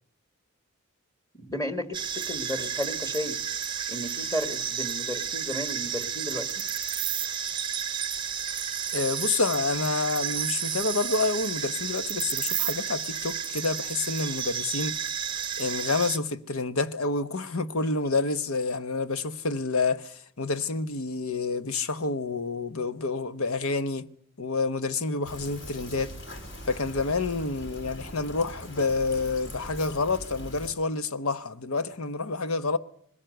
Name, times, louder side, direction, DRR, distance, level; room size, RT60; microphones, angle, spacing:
voice 1, 1.3-3.4 3.9-6.5, left 1 dB, 15° left, 1.8 m, -33 dB
sound 1, 1.9-16.2, right 8 dB, 20° right, 0.8 m, -31 dB
voice 2, 8.9-15.1 15.6-24.1 24.4-26.1 26.7-32.8, left 3 dB, 70° left, 1.0 m, -28 dB
Fill (with liquid), 25.2-30.7, equal, 55° left, 4.2 m, -41 dB
21.0 x 18.5 x 7.9 m
head